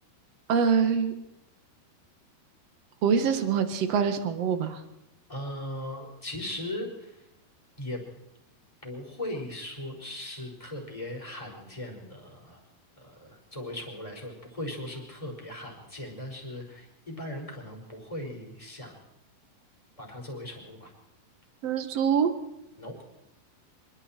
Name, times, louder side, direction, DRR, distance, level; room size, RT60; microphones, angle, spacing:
voice 1, 0.5-1.1 3.0-4.8 21.6-22.3, right 6 dB, 55° right, 8 dB, 1.8 m, -24 dB
voice 2, 5.3-6.9 7.8-8.0 8.8-12.6 13.0-19.0 20.0-20.9 22.8-22.9, left 1 dB, 10° left, 0 dB, 4.8 m, -38 dB
26.0 x 23.5 x 4.5 m, 0.90 s
omnidirectional pair, 4.8 m